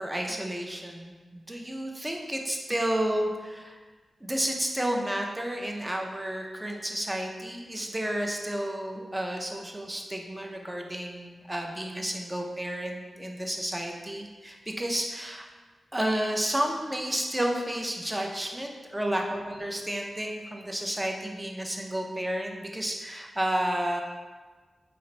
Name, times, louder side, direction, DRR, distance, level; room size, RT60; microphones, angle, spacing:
voice 1, 0.0-3.8 4.2-15.5 15.9-24.0, right 1 dB, 15° right, 1 dB, 0.5 m, -31 dB
3.9 x 2.5 x 3.1 m, 1.4 s
cardioid pair, 70°, 0 cm